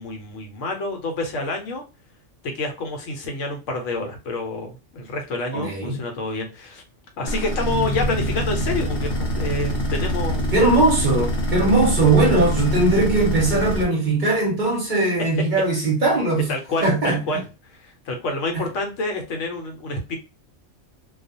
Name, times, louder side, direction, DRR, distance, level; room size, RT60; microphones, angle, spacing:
voice 1, 0.0-1.8 2.4-6.8 7.2-10.6 16.5-17.4 17.7-20.2, left 2 dB, 80° left, 1.1 m, -28 dB
voice 2, 5.5-6.0 10.5-16.5 16.8-17.4 18.5-18.7, right 2 dB, 45° right, 0.8 m, -20 dB
sound 1, 7.3-13.8, equal, 55° left, 0.9 m, -25 dB
2.4 x 2.2 x 2.6 m
omnidirectional pair, 1.3 m